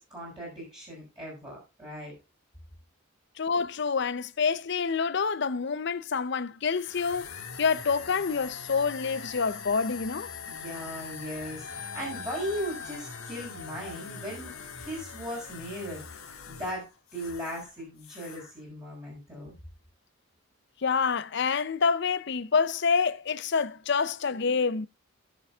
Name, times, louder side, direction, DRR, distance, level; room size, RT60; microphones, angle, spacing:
voice 1, 0.0-2.1 10.5-14.5 14.8-19.5, equal, 20° right, 5.0 m, -38 dB
voice 2, 3.4-7.3 7.6-10.3 20.8-24.9, left 5 dB, 55° left, 0.6 m, -27 dB
sound 1, 6.7-17.7 18.0-18.5, left 6 dB, 90° left, 1.6 m, -42 dB
17.5 x 6.9 x 2.4 m
head